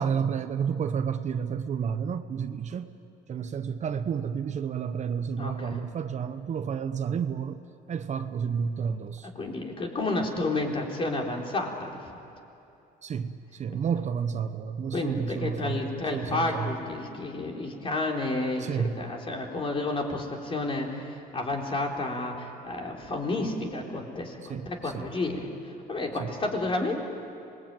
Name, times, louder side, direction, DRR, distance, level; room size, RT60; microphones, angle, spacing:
voice 1, 0.0-2.9 3.3-7.6 7.9-9.3 13.0-16.7 18.6-18.9 24.5-25.1 26.2-26.3, right 7 dB, 45° right, 9 dB, 0.9 m, -31 dB
voice 2, 5.4-5.8 9.4-12.2 14.9-27.0, left 2 dB, 30° left, 0 dB, 4.0 m, -31 dB
26.0 x 20.5 x 9.2 m, 2.8 s
cardioid pair, 110°, 17 cm